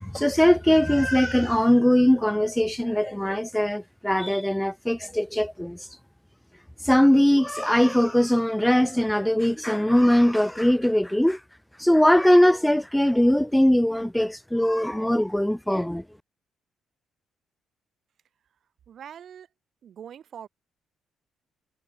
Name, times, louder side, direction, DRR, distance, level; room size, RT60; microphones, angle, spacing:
voice 1, 0.0-5.9 6.8-11.4 11.8-16.0, equal, 5° left, 0.5 m, -21 dB
voice 2, 18.9-19.5 19.8-20.5, right 9 dB, 60° right, 5.4 m, -42 dB
cardioid pair, 90°, 0 cm